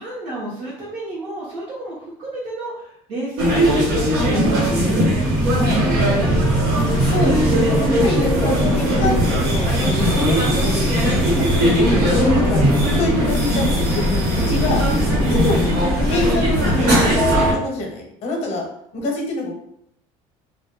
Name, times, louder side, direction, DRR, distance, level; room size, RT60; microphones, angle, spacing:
voice 1, 0.0-7.7 8.2-9.3 11.7-12.1 15.0-15.8, right 1 dB, 50° right, -8 dB, 0.7 m, -30 dB
sound 1, 3.4-17.5, equal, 85° right, 1.1 m, -18 dB
voice 2, 6.8-9.1 9.4-11.5 11.7-14.9 15.3-15.6 16.1-18.6 18.9-19.5, left 2 dB, 50° left, 0 dB, 0.7 m, -26 dB
2.2 x 2.1 x 2.8 m, 0.73 s
cardioid pair, 175°, 14 cm